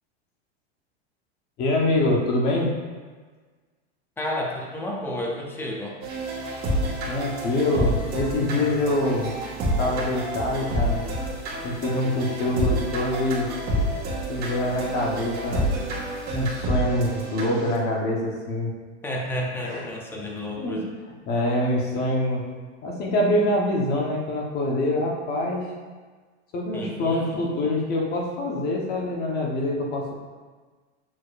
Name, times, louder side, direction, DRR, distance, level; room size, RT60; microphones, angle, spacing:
voice 1, 1.6-2.7 7.1-9.3 9.8-11.1 11.6-13.5 14.3-15.7 16.3-18.7 19.6-19.9 20.3-20.8 21.3-22.5 22.8-25.6 26.5-30.1, left 1 dB, 30° left, -1 dB, 1.1 m, -25 dB
voice 2, 4.2-6.0 13.5-13.6 19.0-20.9 26.7-27.7, left 1 dB, 5° left, -1 dB, 0.6 m, -31 dB
sound 1, 6.0-17.7, equal, 25° right, 1.6 m, -28 dB
7.3 x 6.4 x 2.5 m, 1.4 s
supercardioid pair, 160°, 35 cm